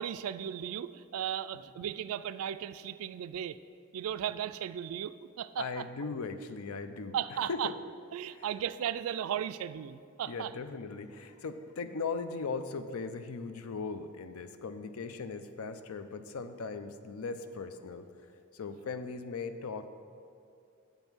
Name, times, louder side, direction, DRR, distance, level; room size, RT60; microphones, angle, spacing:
voice 1, 0.0-3.6 3.9-5.8 7.1-7.7 8.1-10.5, right 9 dB, 70° right, 14 dB, 0.3 m, -36 dB
voice 2, 5.6-7.8 8.3-8.6 10.2-18.1 18.5-19.9, left 4 dB, 80° left, 10 dB, 0.5 m, -39 dB
8.1 x 5.3 x 6.0 m, 2.5 s
head